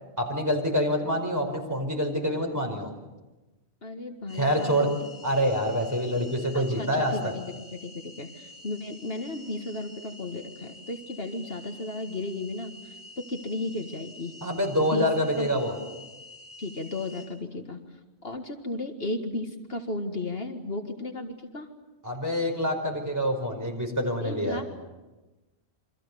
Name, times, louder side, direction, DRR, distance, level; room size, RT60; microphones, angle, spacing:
voice 1, 0.2-2.9 4.3-4.9 5.2-7.3 14.4-15.7 22.0-24.6, equal, 15° right, 2 dB, 5.2 m, -26 dB
voice 2, 3.8-5.0 6.1-6.2 6.5-14.3 14.8-15.1 15.4-15.5 15.8-15.9 16.6-17.8 18.2-21.7 24.2-24.8, left 2 dB, 60° left, 5 dB, 2.0 m, -35 dB
sound 1, 4.3-17.3, left 1 dB, 15° left, 7.6 m, -48 dB
28.0 x 24.5 x 7.0 m, 1.1 s
omnidirectional pair, 1.1 m